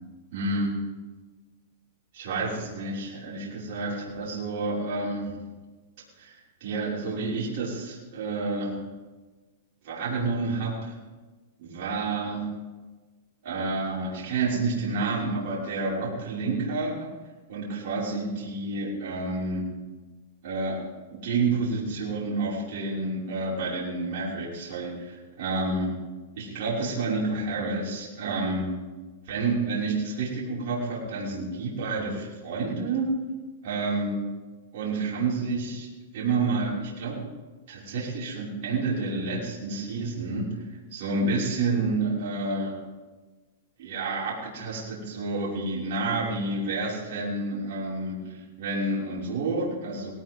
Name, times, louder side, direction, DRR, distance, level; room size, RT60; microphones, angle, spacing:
voice 1, 0.3-0.8 2.1-5.4 6.2-8.8 9.8-10.9 11.6-12.5 13.4-17.1 17.5-19.7 20.4-20.8 21.1-26.0 26.3-28.7 29.3-33.2 33.6-34.2 34.7-35.9 36.1-37.2 37.7-40.5 40.9-42.8 43.8-50.1, right 3 dB, 60° right, -6 dB, 6.0 m, -29 dB
19.5 x 18.5 x 3.8 m, 1.3 s
hypercardioid pair, 140°, 0 cm